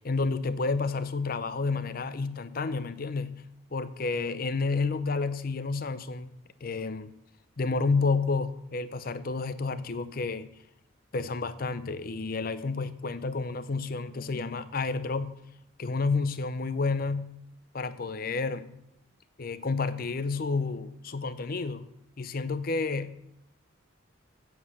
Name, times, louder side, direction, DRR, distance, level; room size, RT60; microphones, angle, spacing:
voice 1, 0.0-3.4 3.7-6.3 6.6-7.1 7.6-10.5 11.1-15.4 15.8-17.3 17.7-18.8 19.4-21.9 22.2-23.3, left 4 dB, 45° left, 0.6 m, -30 dB
8.3 x 7.4 x 7.3 m
head